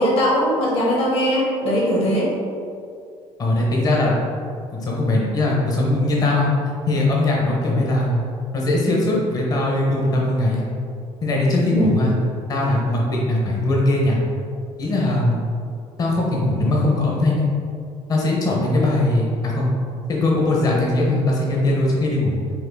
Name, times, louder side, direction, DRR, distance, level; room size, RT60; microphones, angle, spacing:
voice 1, 0.0-2.3 11.7-11.9, equal, 50° left, -4 dB, 1.1 m, -20 dB
voice 2, 3.4-4.2 4.7-6.5 6.9-8.2 8.5-10.7 11.2-12.1 12.5-14.2 14.8-15.4 16.0-17.5 18.1-19.7 20.1-22.3, left 2 dB, 30° left, -3 dB, 0.7 m, -20 dB
4.3 x 2.5 x 3.9 m, 2.4 s
cardioid pair, 145°, 12 cm